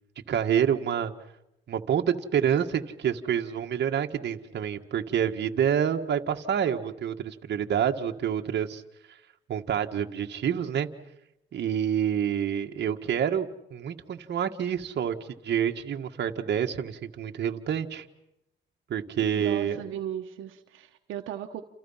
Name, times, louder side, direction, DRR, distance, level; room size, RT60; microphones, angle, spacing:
voice 1, 0.3-1.1 1.7-8.8 9.5-10.9 11.5-15.2 15.4-18.1 18.9-19.8, right 8 dB, 60° right, 4 dB, 1.8 m, -27 dB
voice 2, 19.3-21.6, right 10 dB, 85° right, 4 dB, 1.3 m, -36 dB
29.0 x 29.0 x 5.8 m, 0.85 s
cardioid pair, 90°, 20 cm